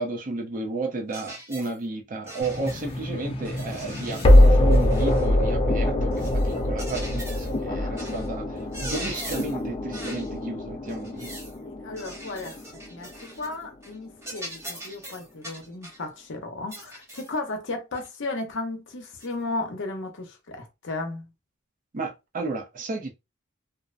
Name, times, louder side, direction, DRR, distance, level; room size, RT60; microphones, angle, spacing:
voice 1, 0.0-8.5 8.8-11.3 21.9-23.1, right 3 dB, 40° right, 0.5 m, -33 dB
sound 1, 1.1-1.8 2.3-3.0 3.4-5.3 6.1-7.6 8.0-8.3 8.6-9.6 9.9-10.3 10.9-11.6 12.0-13.6 13.8-14.0 14.2-16.0 16.7-17.4 17.9-18.1 19.2-19.3, right 1 dB, 15° right, 0.8 m, -41 dB
sound 2, 2.4-13.4, left 1 dB, 25° left, 0.3 m, -23 dB
voice 2, 11.6-12.6 12.9-21.3, left 2 dB, 60° left, 0.8 m, -34 dB
2.5 x 2.1 x 2.5 m
head